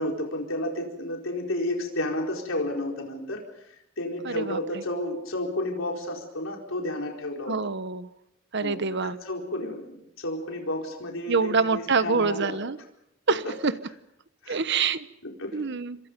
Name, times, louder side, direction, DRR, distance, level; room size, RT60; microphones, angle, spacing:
voice 1, 0.0-3.4 4.0-7.6 8.6-12.6 13.3-13.4 14.4-14.6 15.4-15.8, left 1 dB, 80° left, 1 dB, 4.6 m, -31 dB
voice 2, 4.2-4.8 7.5-8.1 8.5-9.2 11.3-12.8 13.3-13.7 14.5-15.1 15.5-16.0, right 4 dB, 60° right, 14 dB, 1.1 m, -26 dB
28.0 x 26.0 x 5.3 m, 0.80 s
head